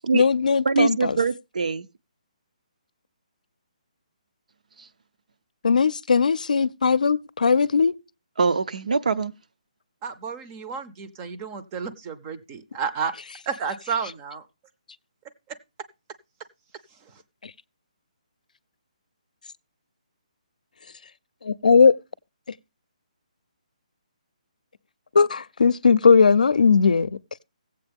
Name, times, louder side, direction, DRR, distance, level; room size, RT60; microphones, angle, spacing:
voice 1, 0.1-1.2 5.6-8.0 21.6-21.9 25.1-27.1, left 5 dB, 90° left, 0.5 m, -18 dB
voice 2, 0.6-1.9 8.4-9.3, right 4 dB, 75° right, 0.6 m, -23 dB
voice 3, 10.0-13.1 13.5-14.5 15.5-15.6 17.0-17.2, right 6 dB, 15° right, 0.5 m, -31 dB
15.5 x 7.8 x 3.5 m
hypercardioid pair, 175°, 4 cm